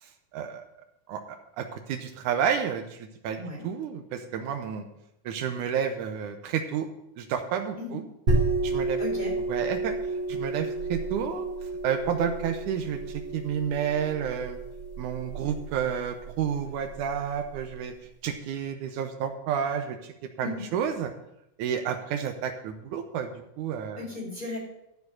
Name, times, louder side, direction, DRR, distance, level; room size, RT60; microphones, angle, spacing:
voice 1, 0.0-0.6 1.1-4.9 5.3-6.9 7.2-8.0 8.6-9.0 9.5-10.0 10.3-11.5 11.8-14.6 15.0-17.9 18.2-21.1 21.6-24.1, right 8 dB, 80° right, 7 dB, 2.2 m, -30 dB
sound 1, 8.3-17.6, right 3 dB, 55° right, 3.5 m, -31 dB
voice 2, 9.0-9.3 20.4-20.7 24.0-24.6, left 3 dB, 15° left, -3 dB, 2.5 m, -35 dB
13.0 x 4.8 x 6.2 m, 0.82 s
omnidirectional pair, 3.7 m